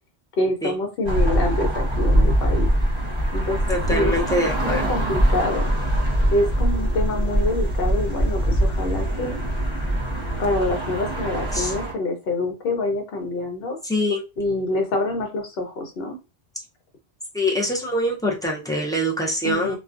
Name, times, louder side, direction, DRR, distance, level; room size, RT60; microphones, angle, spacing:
voice 1, 0.4-2.7 3.3-3.6 3.9-4.1 4.4-5.7 6.3-9.4 10.4-13.8 14.4-16.2 19.4-19.8, left 2 dB, 70° left, 4 dB, 0.9 m, -26 dB
sound 1, 1.0-11.9, right 1 dB, 30° right, 0.9 m, -22 dB
voice 2, 3.7-5.0 11.5-11.7 13.8-14.2 17.3-19.8, equal, 5° left, -3 dB, 0.4 m, -24 dB
2.3 x 2.2 x 2.4 m, 0.28 s
omnidirectional pair, 1.1 m